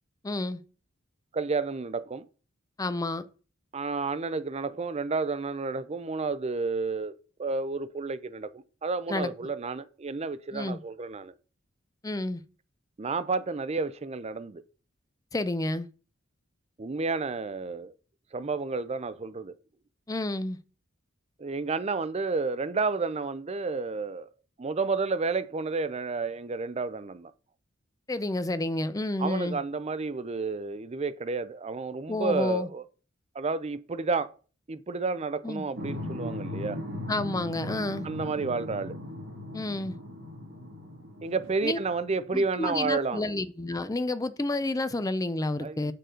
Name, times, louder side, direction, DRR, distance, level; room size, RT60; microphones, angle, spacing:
voice 1, 0.2-0.6 2.8-3.3 9.1-9.3 10.5-10.8 12.0-12.4 15.3-15.9 20.1-20.6 28.1-29.6 32.1-32.7 35.4-35.6 37.1-38.1 39.5-40.0 41.6-41.8 42.3-45.9, left 2 dB, 15° left, 0.5 m, -30 dB
voice 2, 1.3-2.3 3.7-7.1 7.4-11.3 13.0-14.6 16.8-17.9 18.3-19.6 21.4-24.3 24.6-27.3 29.2-32.8 33.3-34.3 34.7-36.8 38.0-39.0 41.2-43.3 45.6-45.9, right 4 dB, 30° right, 0.5 m, -31 dB
sound 1, 35.7-42.3, left 1 dB, 70° right, 3.0 m, -38 dB
6.7 x 6.5 x 3.8 m
head